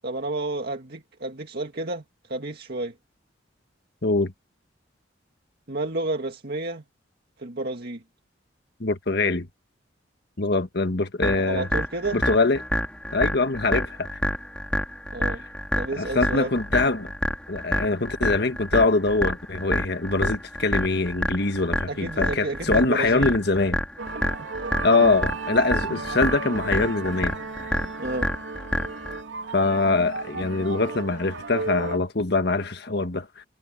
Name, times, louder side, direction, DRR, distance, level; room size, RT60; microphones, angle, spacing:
voice 1, 0.0-2.0 2.3-2.9 5.7-6.8 7.4-8.0 11.3-12.2 15.1-15.4 15.8-16.5 21.9-23.3 24.4-24.5 28.0-28.3 29.9-30.0, right 2 dB, 55° right, 2.0 m, -31 dB
voice 2, 4.0-4.3 8.8-9.5 10.4-11.7 12.1-12.6 13.1-14.2 16.0-17.1 17.5-23.8 24.8-27.4 27.7-27.8 29.5-33.4, left 3 dB, 60° left, 1.5 m, -23 dB
sound 1, 11.2-29.2, equal, 5° left, 3.9 m, -28 dB
sound 2, 24.0-32.0, right 4 dB, 75° right, 3.4 m, -34 dB
head